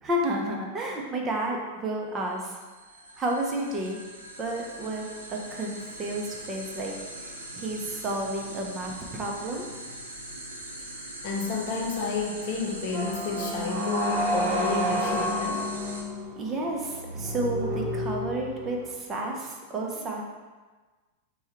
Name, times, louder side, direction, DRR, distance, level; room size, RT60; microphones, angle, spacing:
voice 1, 0.0-2.6 3.2-4.0 4.4-6.9 7.2-9.7 16.4-20.2, right 1 dB, 25° right, 0 dB, 0.7 m, -31 dB
sound 1, 2.4-16.0, right 1 dB, 80° right, 0.6 m, -41 dB
voice 2, 11.0-15.7, left 4 dB, 45° left, 1 dB, 0.6 m, -31 dB
sound 2, 12.9-18.9, equal, 45° right, 1.0 m, -30 dB
4.5 x 2.3 x 4.3 m, 1.3 s
figure-of-eight pair, 90°, 0 cm